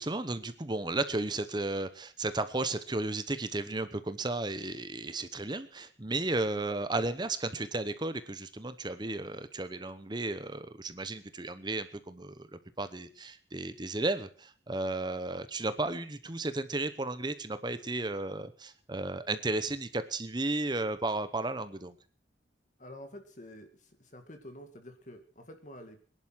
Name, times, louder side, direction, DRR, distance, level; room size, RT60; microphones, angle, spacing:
voice 1, 0.0-21.9, right 2 dB, 25° right, 12 dB, 0.9 m, -34 dB
voice 2, 22.8-26.0, left 1 dB, 40° left, 6 dB, 2.1 m, -48 dB
21.0 x 11.0 x 6.3 m, 0.42 s
head